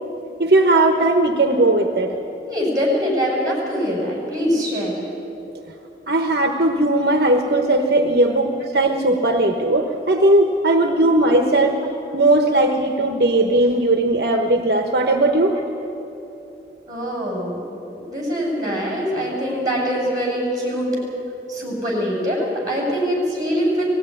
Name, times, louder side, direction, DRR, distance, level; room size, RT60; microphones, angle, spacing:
voice 1, 0.4-2.2 6.1-11.8 12.1-15.5, right 2 dB, 65° right, 4 dB, 1.1 m, -18 dB
voice 2, 2.5-4.9 16.9-17.6 18.0-21.0 21.5-23.9, equal, 20° right, -3 dB, 7.1 m, -23 dB
19.0 x 15.5 x 9.9 m, 2.9 s
head